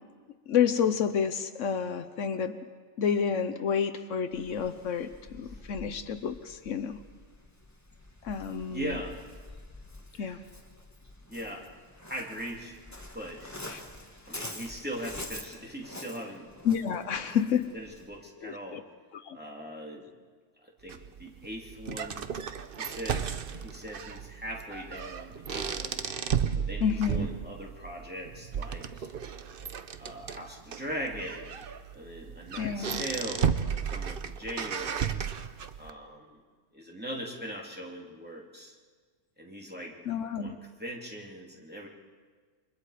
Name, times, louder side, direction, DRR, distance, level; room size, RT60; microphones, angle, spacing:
voice 1, 0.5-2.6 3.0-7.0 8.2-9.0 10.2-10.4 13.7-13.8 16.6-17.7 18.4-18.8 19.2-19.4 26.8-27.3 32.6-33.0 40.1-40.6, left 7 dB, 75° left, 10 dB, 1.2 m, -29 dB
Waves surf, 4.3-18.2, left 1 dB, 15° left, 1.7 m, -47 dB
voice 2, 8.7-9.2 10.1-10.4 11.3-11.7 12.1-12.8 13.1-13.6 14.3-16.5 16.9-17.4 17.7-18.8 19.3-20.1 20.6-22.3 22.8-26.0 26.6-29.1 30.0-31.6 31.9-35.2 35.8-36.4 36.7-38.7 39.4-39.9 40.3-41.9, equal, 5° right, -2 dB, 3.0 m, -40 dB
sound 1, 20.9-35.9, right 7 dB, 50° right, 0.9 m, -34 dB
29.0 x 24.5 x 5.0 m, 1.5 s
omnidirectional pair, 1.3 m